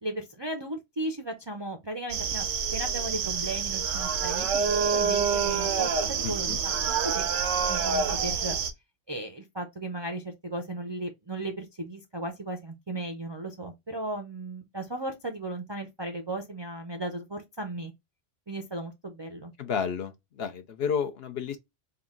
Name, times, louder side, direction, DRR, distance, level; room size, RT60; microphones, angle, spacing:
voice 1, 0.0-7.3 7.7-8.6 9.1-17.9 18.5-19.5, right 1 dB, 35° right, 0.4 m, -36 dB
sound 1, 2.1-8.7, right 6 dB, 90° right, 1.1 m, -27 dB
voice 2, 6.2-6.6 19.6-21.6, left 7 dB, 60° left, 0.8 m, -31 dB
3.8 x 2.4 x 3.6 m
omnidirectional pair, 1.3 m